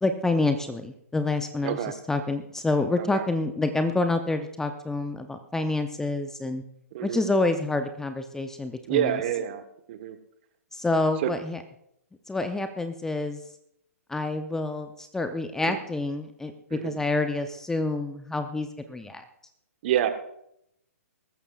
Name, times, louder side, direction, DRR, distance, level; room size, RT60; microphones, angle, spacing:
voice 1, 0.0-1.8 2.1-6.6 7.0-9.1 10.7-11.6 12.3-13.4 14.1-19.2, left 2 dB, 5° left, 8 dB, 0.6 m, -27 dB
voice 2, 1.6-1.9 3.0-3.2 6.9-7.3 8.9-9.6 9.9-10.2 11.2-11.3 15.6-15.8 16.7-17.0 19.8-20.1, right 11 dB, 45° right, 9 dB, 1.4 m, -27 dB
22.5 x 14.0 x 2.4 m, 0.77 s
figure-of-eight pair, 120°, 8 cm